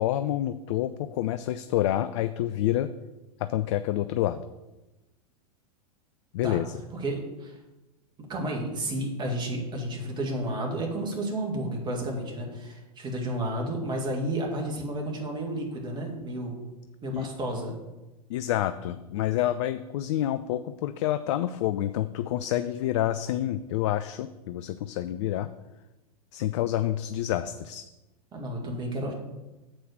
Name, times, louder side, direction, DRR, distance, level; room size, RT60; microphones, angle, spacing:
voice 1, 0.0-2.9 3.4-4.4 6.3-6.6 17.1-17.3 18.3-25.5 26.3-27.9, left 13 dB, 50° left, 11 dB, 0.4 m, -28 dB
voice 2, 6.9-7.6 8.3-16.5 17.0-17.7 28.3-29.1, right 1 dB, 20° right, 0 dB, 2.1 m, -31 dB
7.4 x 4.7 x 6.3 m, 1.0 s
figure-of-eight pair, 95°, 20 cm